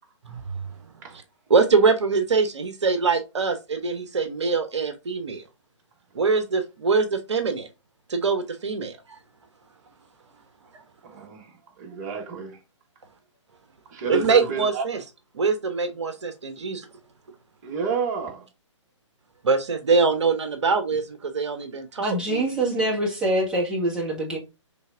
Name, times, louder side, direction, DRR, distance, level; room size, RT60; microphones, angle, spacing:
voice 1, 1.5-5.4 6.1-7.7 8.1-9.0 14.1-15.0 15.3-16.9 19.4-22.4, right 4 dB, 65° right, 0.8 m, -23 dB
voice 2, 11.0-12.6 13.9-14.8 17.6-18.5, right 5 dB, 35° right, 1.2 m, -30 dB
voice 3, 22.0-24.4, right 1 dB, 5° right, 1.3 m, -25 dB
5.5 x 3.4 x 2.4 m
figure-of-eight pair, 130°, 16 cm